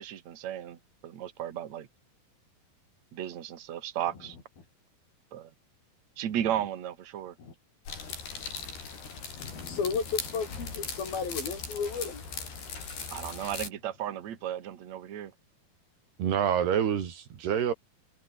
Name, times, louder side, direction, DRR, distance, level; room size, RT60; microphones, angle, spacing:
voice 1, 0.0-1.9 3.1-4.4 5.3-5.5 6.2-7.3 13.1-15.3, right 11 dB, 50° right, 3.0 m, -34 dB
sound 1, 7.8-13.7, left 5 dB, 85° left, 8.6 m, -39 dB
voice 2, 9.4-12.2, left 5 dB, 65° left, 8.0 m, -33 dB
voice 3, 16.2-17.7, right 8 dB, 90° right, 5.0 m, -27 dB
omnidirectional pair, 4.5 m